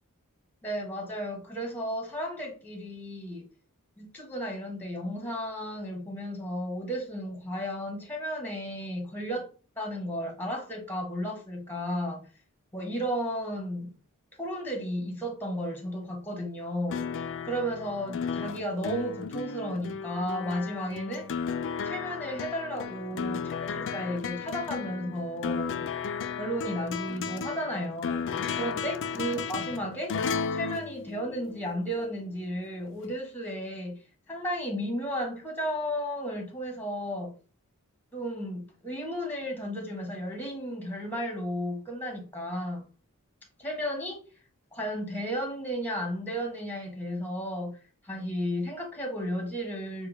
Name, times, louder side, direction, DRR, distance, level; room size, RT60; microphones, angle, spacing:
voice 1, 0.6-3.5 4.0-9.5 9.8-12.3 12.7-13.9 14.4-17.0 17.4-21.3 21.8-25.9 26.4-28.3 28.6-30.1 30.5-34.0 34.3-37.4 38.1-42.8 43.6-44.2 44.7-47.8 48.0-50.1, equal, 10° left, 1.2 m, -33 dB
sound 1, 16.9-31.8 33.0-33.1, left 6 dB, 55° left, 0.4 m, -34 dB
6.5 x 2.3 x 3.4 m
head